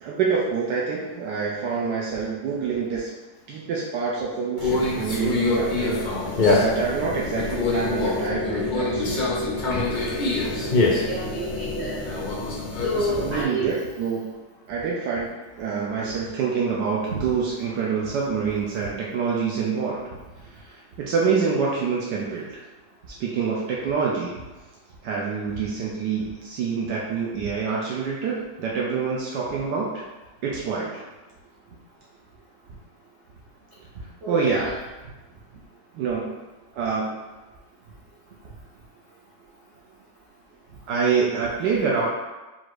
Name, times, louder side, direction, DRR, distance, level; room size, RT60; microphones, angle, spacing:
voice 1, 0.0-3.1 3.5-9.2 13.2-14.4 14.7-15.3 15.6-20.0 20.5-22.6 23.2-24.3 25.0-30.0 30.4-31.0 34.3-34.7 35.9-36.3 36.7-37.1 40.9-42.1, right 5 dB, 75° right, -4 dB, 1.3 m, -26 dB
Conversation, 4.6-13.4, left 3 dB, 65° left, 0.4 m, -25 dB
sound 1, 5.1-12.4, left 2 dB, 20° right, 1.1 m, -33 dB
voice 2, 11.0-12.0 12.8-13.7 17.1-17.2 34.2-34.7, right 2 dB, 55° right, -6 dB, 0.8 m, -28 dB
4.3 x 2.5 x 4.7 m, 1.1 s
omnidirectional pair, 1.9 m